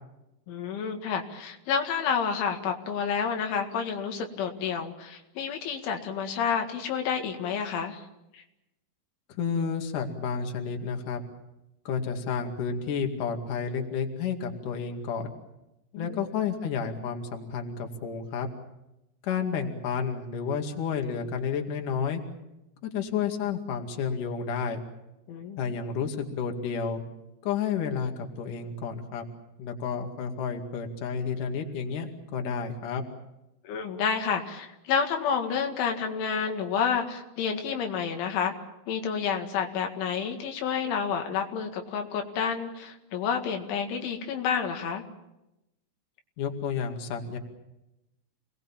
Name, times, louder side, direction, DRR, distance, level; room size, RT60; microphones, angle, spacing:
voice 1, 0.5-8.0 8.3-8.4 15.9-16.2 25.3-25.6 33.6-38.5 38.9-45.0, left 6 dB, 85° left, 4 dB, 4.5 m, -29 dB
voice 2, 9.4-11.2 11.8-15.3 16.0-18.5 19.2-22.2 22.8-24.8 25.6-27.0 27.4-29.2 29.6-33.0 46.4-47.4, left 6 dB, 50° left, 3 dB, 3.3 m, -31 dB
29.0 x 20.0 x 7.3 m, 0.91 s
omnidirectional pair, 5.3 m